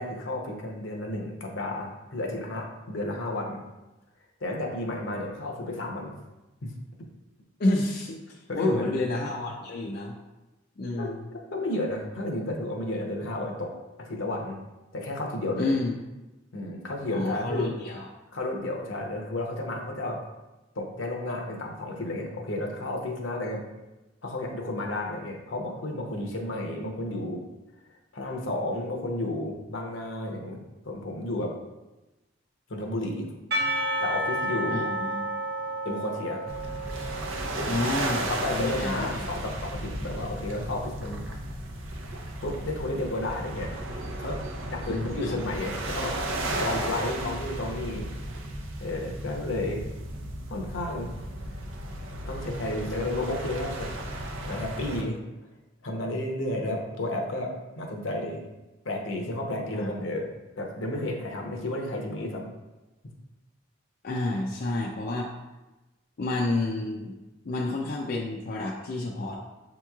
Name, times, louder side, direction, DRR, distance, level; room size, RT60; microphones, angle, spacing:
voice 1, 0.0-3.6 4.4-6.1 6.6-6.7 8.5-9.0 11.0-11.1 11.5-14.6 14.9-15.7 16.5-17.7 18.3-20.2 20.8-23.6 24.2-27.4 28.1-31.6 32.7-33.3 34.0-34.9 35.8-36.4 38.3-41.2 42.4-43.7 44.2-48.1 48.8-49.8 50.5-51.1 52.3-53.9 54.4-55.2 55.8-58.5 58.8-60.3 60.6-62.5, left 1 dB, 75° left, 1 dB, 0.8 m, -32 dB
voice 2, 7.6-10.1 10.8-11.3 15.6-15.9 17.1-18.1 34.7-35.3 37.7-39.3 44.9-45.4 59.7-60.1 64.0-65.3 66.2-67.2 67.5-69.4, left 2 dB, 50° left, -2 dB, 0.4 m, -30 dB
Percussion / Church bell, 33.5-38.7, right 1 dB, 55° right, 0.8 m, -31 dB
sound 1, 36.5-55.0, right 1 dB, 80° right, 0.6 m, -34 dB
7.1 x 3.0 x 2.3 m, 1.1 s
head